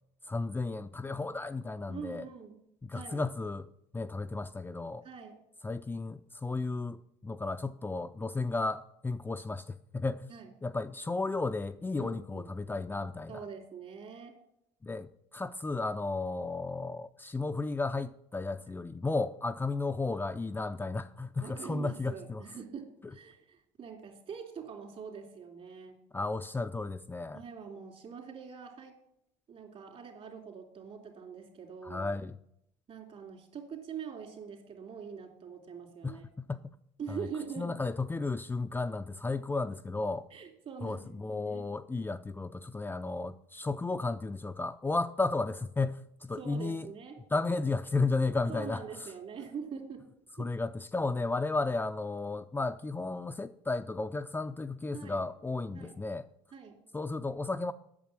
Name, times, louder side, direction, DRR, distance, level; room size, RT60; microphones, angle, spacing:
voice 1, 0.3-2.3 2.8-3.7 3.9-5.0 5.6-10.3 10.6-13.3 14.8-22.4 26.1-27.4 31.8-32.4 36.0-36.7 37.1-37.2 37.6-40.3 40.8-46.9 47.3-48.8 50.4-56.3 56.9-57.7, left 3 dB, 15° left, 0.5 m, -33 dB
voice 2, 1.9-3.2 5.0-5.4 10.3-10.5 12.0-12.5 13.3-14.3 21.4-26.0 27.3-28.9 29.5-32.1 32.9-36.3 37.0-37.8 40.3-41.7 46.4-47.2 48.5-50.0 50.4-50.5 54.9-55.2 55.7-56.0 56.5-56.8, right 6 dB, 50° right, 3.0 m, -44 dB
8.6 x 6.7 x 7.4 m
supercardioid pair, 75°, 13 cm